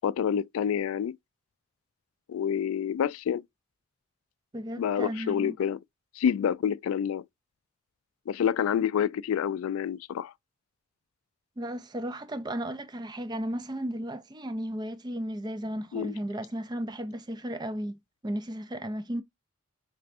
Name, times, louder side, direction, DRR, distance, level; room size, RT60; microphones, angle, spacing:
voice 1, 0.0-1.2 2.3-3.4 4.8-5.8 6.2-7.2 8.3-10.3 15.9-16.1, left 8 dB, 85° left, 0.3 m, -28 dB
voice 2, 4.5-5.6 11.6-19.2, equal, 20° right, 0.5 m, -34 dB
5.3 x 3.4 x 2.5 m
head